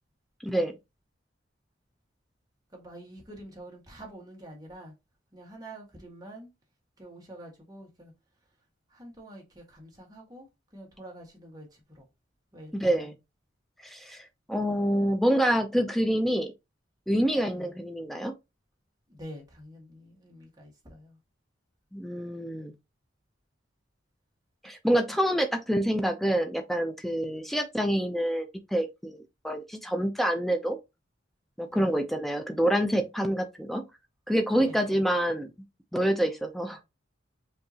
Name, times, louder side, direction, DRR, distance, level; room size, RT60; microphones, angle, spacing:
voice 1, 0.4-0.7 12.7-13.1 13.8-16.5 17.1-18.3 21.9-22.7 24.6-29.2 29.4-30.8 31.6-33.8 34.3-35.5 35.9-36.8, equal, ahead, 0.4 m, -27 dB
voice 2, 2.7-4.9 5.3-6.5 7.0-8.1 8.9-10.5 10.7-12.1 12.5-13.1 17.5-17.7 19.1-21.2 31.7-32.0 33.2-33.4 34.5-35.0, right 1 dB, 20° right, 1.4 m, -46 dB
5.4 x 2.8 x 2.7 m
head